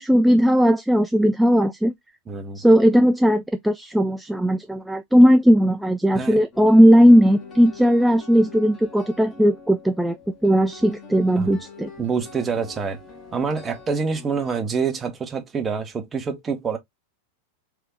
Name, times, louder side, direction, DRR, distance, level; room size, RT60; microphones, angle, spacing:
voice 1, 0.0-1.9 2.6-10.2 10.4-11.9, equal, 5° right, 0.3 m, -17 dB
voice 2, 2.3-2.6 6.1-6.4 11.4-11.5 12.0-13.0 13.3-16.8, right 5 dB, 20° right, 0.9 m, -26 dB
sound 1, 6.5-14.6, left 3 dB, 25° left, 1.5 m, -44 dB
3.5 x 2.8 x 3.7 m
figure-of-eight pair, 90°, 0 cm